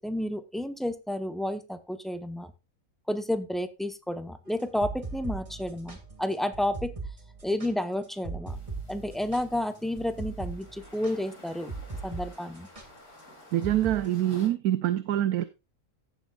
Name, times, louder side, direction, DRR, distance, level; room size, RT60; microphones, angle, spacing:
voice 1, 0.0-2.5 3.1-6.9 7.4-8.6 8.9-11.7 12.0-12.7, left 1 dB, ahead, 0.5 m, -31 dB
sound 1, 4.6-12.3 12.5-12.9 13.6-14.0, right 4 dB, 25° right, 1.7 m, -39 dB
sound 2, 8.5-14.5, left 2 dB, 85° left, 4.7 m, -53 dB
voice 2, 13.5-15.4, right 12 dB, 80° right, 1.2 m, -25 dB
15.5 x 7.4 x 2.4 m
omnidirectional pair, 1.6 m